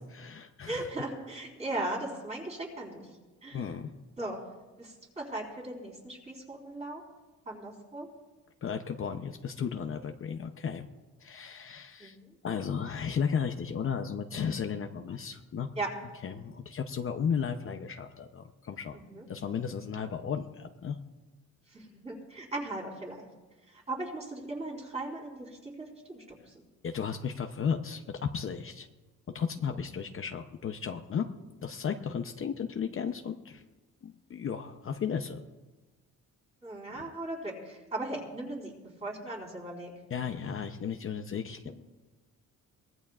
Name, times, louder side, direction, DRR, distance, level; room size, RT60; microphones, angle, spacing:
voice 1, 0.1-0.9 3.5-3.9 8.6-10.9 11.2-12.2 12.4-15.7 16.2-19.0 19.3-21.0 26.8-28.9 29.3-31.3 31.6-33.6 34.0-35.4 40.1-41.7, left 7 dB, 40° left, 6 dB, 0.7 m, -34 dB
voice 2, 0.6-3.1 3.4-3.7 4.2-4.4 4.8-7.0 7.5-8.1 12.0-12.3 15.8-15.9 18.9-19.3 21.7-23.3 23.7-26.6 29.7-29.8 36.6-38.7 39.0-39.9 41.6-41.7, right 2 dB, 20° right, -2 dB, 4.0 m, -38 dB
23.0 x 19.0 x 2.4 m, 1.2 s
cardioid pair, 145°, 32 cm